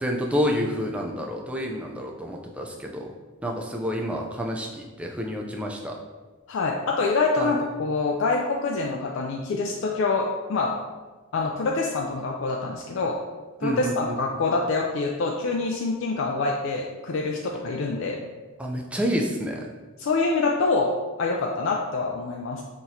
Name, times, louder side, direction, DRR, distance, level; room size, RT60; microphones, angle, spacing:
voice 1, 0.0-3.1 3.4-6.0 7.4-7.5 13.6-13.9 18.6-19.6, equal, 5° right, 0 dB, 0.3 m, -28 dB
voice 2, 6.5-10.7 11.3-13.2 13.6-18.2 20.0-22.6, left 3 dB, 65° left, 0 dB, 0.4 m, -26 dB
5.7 x 3.0 x 2.7 m, 1.3 s
head